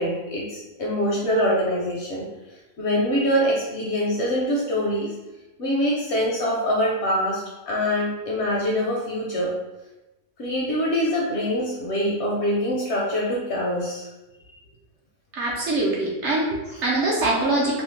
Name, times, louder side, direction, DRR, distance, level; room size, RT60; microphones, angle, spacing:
voice 1, 0.0-2.3 2.8-5.1 5.6-9.5 10.4-14.1 14.5-14.6 16.7-16.8, equal, 65° left, -4 dB, 0.7 m, -24 dB
voice 2, 15.3-17.8, right 2 dB, 65° right, -4 dB, 0.8 m, -23 dB
2.7 x 2.1 x 3.0 m, 1.0 s
omnidirectional pair, 1.5 m